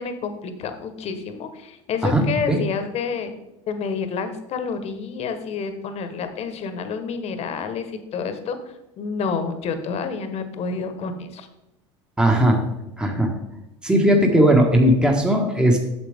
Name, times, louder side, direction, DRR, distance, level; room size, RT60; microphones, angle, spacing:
voice 1, 0.0-3.3 3.7-11.5, left 5 dB, 45° left, 9 dB, 1.3 m, -29 dB
voice 2, 12.2-12.6 13.0-13.3 13.8-15.8, right 1 dB, 5° right, 1 dB, 1.6 m, -17 dB
8.8 x 7.0 x 3.6 m, 0.90 s
hypercardioid pair, 85°, 15 cm